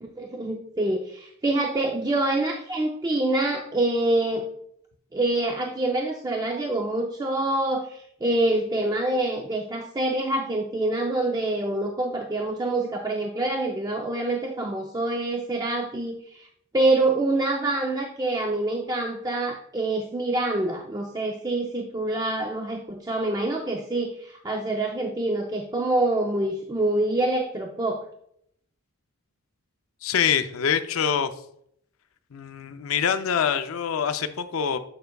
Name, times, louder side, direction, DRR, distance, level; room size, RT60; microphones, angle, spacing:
voice 1, 0.0-4.5 5.1-16.5 16.7-28.0, right 2 dB, 15° right, 2 dB, 0.4 m, -26 dB
voice 2, 30.0-31.3 32.3-34.8, left 7 dB, 70° left, 9 dB, 0.5 m, -25 dB
6.8 x 6.3 x 2.3 m, 0.70 s
head